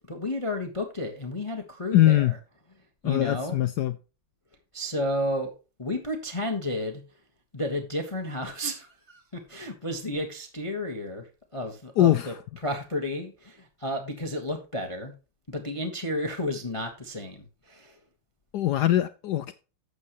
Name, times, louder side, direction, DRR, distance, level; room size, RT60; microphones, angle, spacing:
voice 1, 0.1-2.3 3.0-3.6 4.7-5.5 5.8-7.0 7.5-11.2 11.5-15.1 15.5-17.9, left 1 dB, 20° left, 1.1 m, -32 dB
voice 2, 1.9-2.3 3.0-4.0 12.0-12.4 18.5-19.5, left 13 dB, 80° left, 0.9 m, -22 dB
12.0 x 8.1 x 3.0 m
omnidirectional pair, 2.4 m